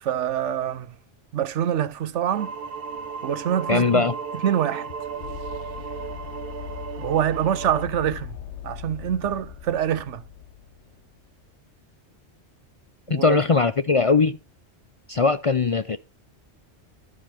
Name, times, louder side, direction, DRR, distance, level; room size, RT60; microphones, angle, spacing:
voice 1, 0.0-0.9 1.3-2.5 3.2-4.1 4.4-4.9 7.0-8.4 8.6-10.2 13.1-13.4, right 10 dB, 85° right, 1.1 m, -25 dB
sound 1, 2.3-7.8, right 6 dB, 60° right, 0.9 m, -35 dB
sound 2, 3.0-11.1, left 10 dB, 75° left, 1.1 m, -40 dB
voice 2, 3.7-4.1 13.1-14.4 15.1-16.0, left 4 dB, 45° left, 0.4 m, -20 dB
13.0 x 5.0 x 5.9 m
omnidirectional pair, 1.2 m